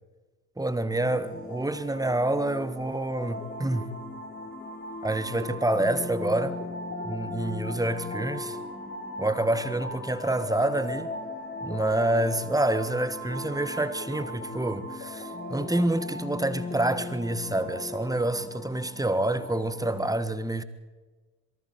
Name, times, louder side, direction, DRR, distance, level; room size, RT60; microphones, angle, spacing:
voice 1, 0.6-3.9 5.0-6.6 7.0-8.6 9.2-11.1 11.6-20.6, right 1 dB, 5° right, 1.5 m, -27 dB
sound 1, 0.9-20.1, left 2 dB, 25° left, 7.5 m, -37 dB
26.5 x 23.0 x 4.6 m
figure-of-eight pair, 55°, 48 cm